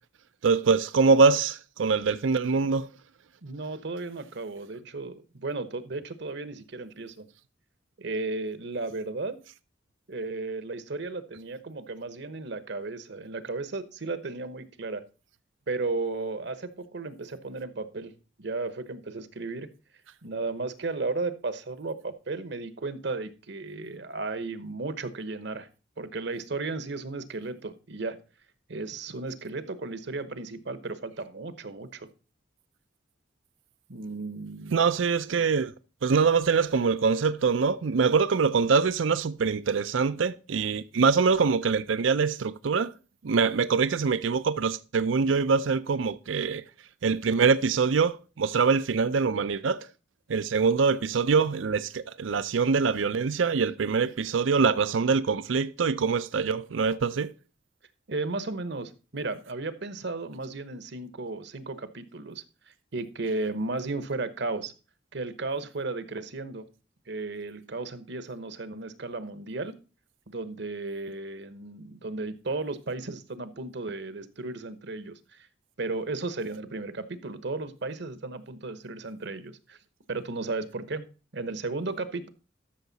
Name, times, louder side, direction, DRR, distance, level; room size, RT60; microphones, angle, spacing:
voice 1, 0.4-2.9 34.7-35.7 36.0-42.9 43.2-46.6 47.0-49.9 50.3-57.3, right 5 dB, 80° right, 0.5 m, -24 dB
voice 2, 3.4-7.3 8.0-9.4 10.1-15.0 15.7-18.1 18.4-19.7 20.2-25.7 26.0-28.2 28.7-32.1 33.9-34.8 58.1-64.7 65.1-66.6 67.1-69.7 70.3-75.5 75.8-79.8 80.1-81.1 81.3-82.3, right 3 dB, 65° right, 1.0 m, -34 dB
13.0 x 6.6 x 4.0 m
head